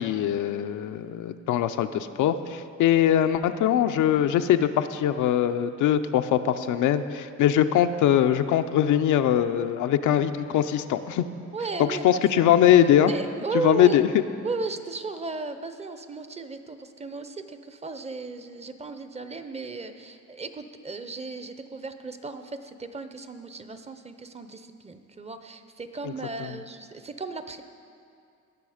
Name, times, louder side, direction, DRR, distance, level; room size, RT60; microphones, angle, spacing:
voice 1, 0.0-11.2 11.8-13.1 13.6-14.1, left 10 dB, 80° left, 9 dB, 0.5 m, -22 dB
voice 2, 11.5-12.8 13.1-14.0 14.4-27.6, right 3 dB, 20° right, 9 dB, 0.7 m, -35 dB
18.0 x 6.1 x 5.0 m, 2.4 s
cardioid pair, 90°, 30 cm